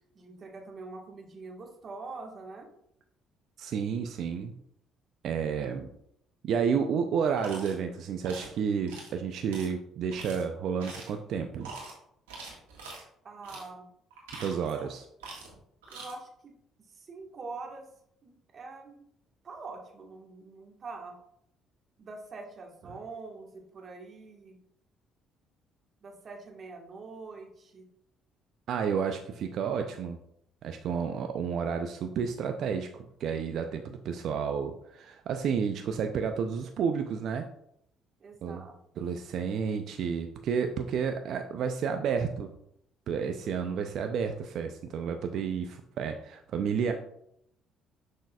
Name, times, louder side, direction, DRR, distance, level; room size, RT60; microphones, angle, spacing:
voice 1, 0.1-2.7 13.2-13.9 15.9-16.5 16.9-17.9 18.2-19.1 19.4-21.2 22.0-24.6 26.0-27.9 38.2-38.7, right 3 dB, 45° right, 2 dB, 1.5 m, -44 dB
voice 2, 3.6-4.5 5.2-5.9 6.4-11.7 14.4-15.1 28.7-30.2 30.6-37.4 38.4-38.6 39.0-42.5 43.1-46.9, right 6 dB, 65° right, 6 dB, 0.5 m, -31 dB
sound 1, 7.4-7.8 8.2-8.5 8.9-9.1 9.5-9.7 10.1-10.4 10.8-11.2 11.6-11.9 12.3-13.0 13.4-13.7 14.1-14.9 15.2-15.6 15.8-16.1, right 3 dB, 90° right, 1.7 m, -44 dB
6.4 x 6.2 x 2.4 m, 0.74 s
hypercardioid pair, 55°, 0 cm